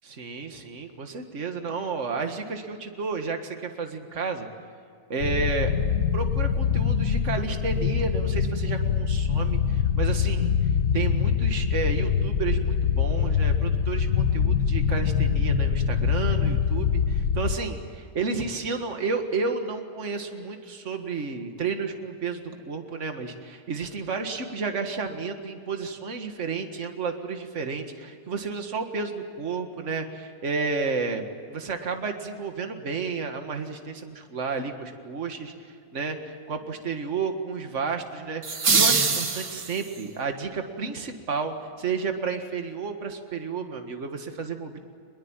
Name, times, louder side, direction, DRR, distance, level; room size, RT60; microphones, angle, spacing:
voice 1, 0.0-4.5 5.1-5.7 6.1-10.5 10.9-44.8, right 4 dB, 45° right, 5 dB, 2.1 m, -31 dB
sound 1, 5.2-17.6, left 7 dB, 60° left, 1.5 m, -24 dB
sound 2, 38.4-40.0, right 4 dB, 85° right, 2.6 m, -23 dB
23.0 x 22.0 x 9.0 m, 2.3 s
omnidirectional pair, 1.8 m